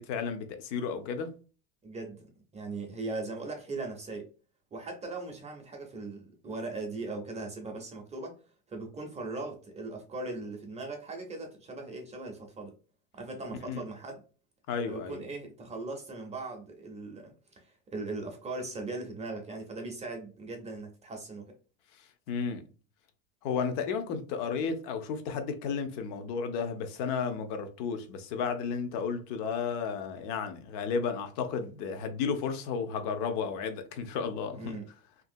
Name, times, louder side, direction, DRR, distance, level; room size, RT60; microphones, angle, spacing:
voice 1, 0.0-1.4 13.7-13.8 14.7-15.2 22.3-22.7 23.4-34.8, left 6 dB, 60° left, 0.7 m, -33 dB
voice 2, 1.8-2.3 2.5-4.3 4.7-8.4 8.7-12.7 13.2-14.2 14.9-21.6 34.5-34.9, right 3 dB, 15° right, 0.5 m, -39 dB
2.8 x 2.7 x 2.5 m
supercardioid pair, 125°, 40 cm